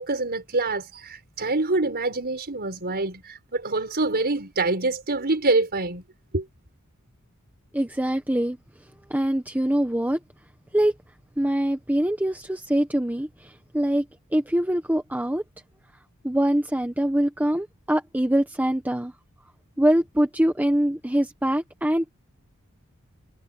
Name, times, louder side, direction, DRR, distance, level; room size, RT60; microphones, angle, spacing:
voice 1, 0.0-6.0 6.3-6.5, right 2 dB, 45° right, 5.6 m, -25 dB
voice 2, 7.7-8.6 9.1-10.2 10.7-10.9 11.4-14.0 14.3-15.4 16.2-19.1 19.8-22.1, right 1 dB, 10° right, 1.2 m, -23 dB
head